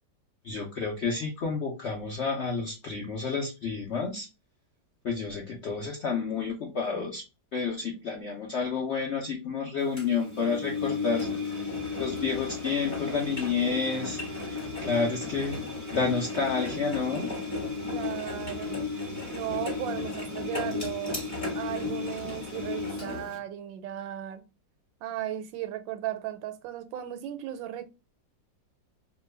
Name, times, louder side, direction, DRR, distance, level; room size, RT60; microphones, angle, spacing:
voice 1, 0.4-4.3 5.0-7.2 7.5-11.3 12.0-14.2 14.8-15.6 15.9-17.3, left 5 dB, 75° left, 0.6 m, -30 dB
Engine, 10.0-23.4, left 3 dB, 10° left, 0.8 m, -34 dB
voice 2, 17.9-18.8 19.3-21.3 21.5-24.4 25.0-27.9, right 11 dB, 90° right, 1.3 m, -36 dB
2.9 x 2.1 x 3.2 m
omnidirectional pair, 2.0 m